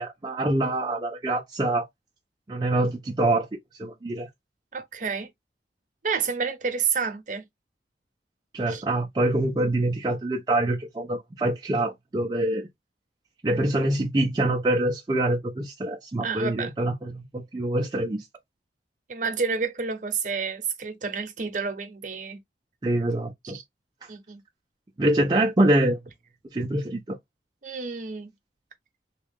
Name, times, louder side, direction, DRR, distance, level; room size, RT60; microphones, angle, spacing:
voice 1, 0.0-1.9 2.5-3.5 3.8-4.3 8.5-12.7 13.4-18.3 22.8-23.6 24.0-24.1 25.0-26.0 26.5-27.2, right 1 dB, 25° right, 0.4 m, -25 dB
voice 2, 4.7-5.3 6.0-7.5 8.7-8.8 16.2-16.7 19.1-22.4 23.4-23.6 24.1-24.4 27.6-28.3, right 5 dB, 45° right, 0.8 m, -29 dB
3.6 x 2.3 x 3.4 m
head